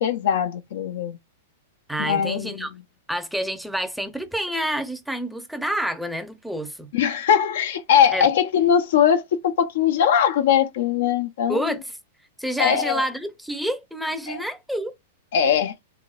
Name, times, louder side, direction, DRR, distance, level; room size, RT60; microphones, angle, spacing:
voice 1, 0.0-1.2 2.0-2.7 6.9-11.8 12.6-13.0 14.3-14.4 15.3-15.7, left 8 dB, 70° left, 0.7 m, -21 dB
voice 2, 1.9-2.7 3.1-6.9 8.1-8.3 11.5-11.9 12.4-15.0, equal, ahead, 0.7 m, -28 dB
3.6 x 3.5 x 2.5 m
hypercardioid pair, 135°, 0 cm